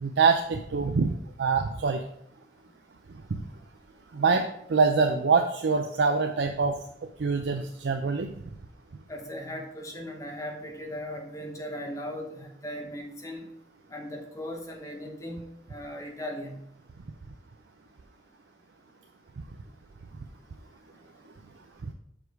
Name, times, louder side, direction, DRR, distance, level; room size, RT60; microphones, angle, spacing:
voice 1, 0.0-1.1 1.4-2.0 3.3-3.4 4.1-6.8 7.2-8.3 21.8-21.9, right 5 dB, 85° right, 4 dB, 0.5 m, -24 dB
voice 2, 9.1-13.5 13.9-16.6, equal, 20° left, 2 dB, 0.9 m, -38 dB
6.1 x 5.2 x 4.7 m, 0.76 s
head